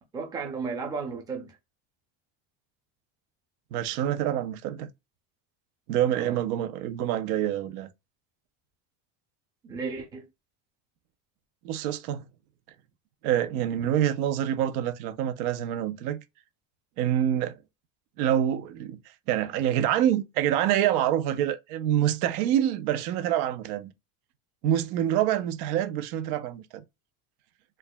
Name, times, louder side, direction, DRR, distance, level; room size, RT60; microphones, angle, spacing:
voice 1, 0.1-1.6 6.1-6.4 9.6-10.2, right 5 dB, 10° right, 0.4 m, -34 dB
voice 2, 3.7-4.9 5.9-7.9 11.6-12.2 13.2-16.2 17.0-17.6 18.2-19.0 19.3-23.9 24.6-26.8, right 11 dB, 85° right, 0.8 m, -26 dB
4.6 x 2.4 x 2.3 m
cardioid pair, 170°, 44 cm